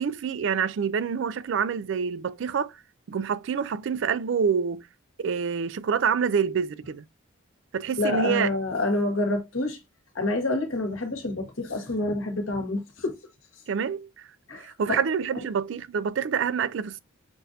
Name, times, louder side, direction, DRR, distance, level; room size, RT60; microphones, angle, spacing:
voice 1, 0.0-2.8 3.1-4.9 5.2-7.0 7.7-8.5 13.7-14.3 14.6-17.0, right 6 dB, 65° right, 0.4 m, -27 dB
voice 2, 8.0-9.8 10.1-13.2 14.5-14.7, left 2 dB, 85° left, 1.5 m, -27 dB
6.0 x 2.6 x 2.7 m
head